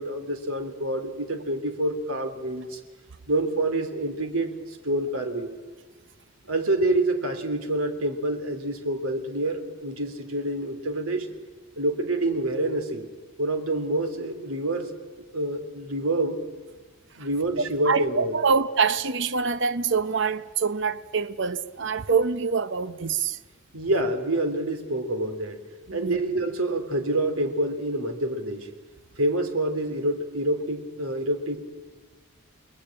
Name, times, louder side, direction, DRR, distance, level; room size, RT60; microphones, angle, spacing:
voice 1, 0.0-2.8 3.3-5.5 6.5-11.3 11.8-13.1 13.4-14.9 15.3-16.4 17.2-18.4 23.7-25.6 25.9-28.7 29.2-31.6, right 1 dB, 85° right, 3.2 m, -27 dB
voice 2, 17.9-23.4 25.9-26.2, right 5 dB, 55° right, 0.8 m, -25 dB
29.5 x 21.0 x 8.8 m
head